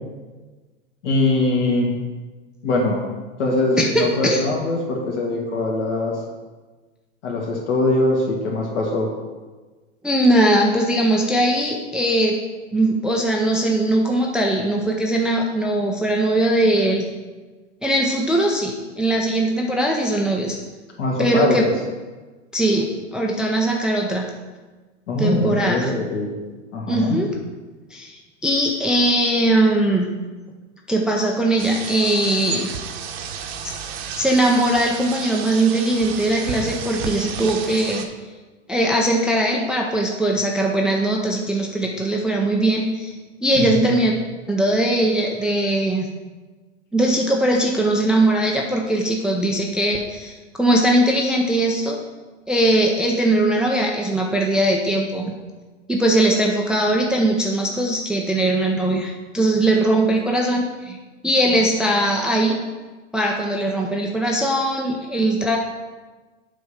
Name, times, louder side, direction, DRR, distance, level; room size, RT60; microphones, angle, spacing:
voice 1, 1.0-1.9 2.6-3.0 3.4-6.2 7.2-9.1 21.0-21.7 25.1-26.3 26.7-27.2 43.5-43.9, left 2 dB, 70° left, -1 dB, 2.2 m, -22 dB
voice 2, 3.8-4.4 10.0-12.4 12.7-17.1 17.8-20.6 21.2-21.7 22.5-24.3 25.2-25.9 26.9-27.3 27.9-30.1 30.9-32.7 33.6-33.8 34.2-38.0 38.7-43.1 43.4-44.1 44.5-46.1 46.9-52.0 52.5-55.3 55.9-61.0 61.2-62.6 63.1-65.6, right 1 dB, ahead, 0 dB, 0.4 m, -20 dB
sound 1, 31.6-38.1, right 7 dB, 55° right, 1.0 m, -32 dB
7.6 x 3.5 x 5.7 m, 1.3 s
hypercardioid pair, 110°, 37 cm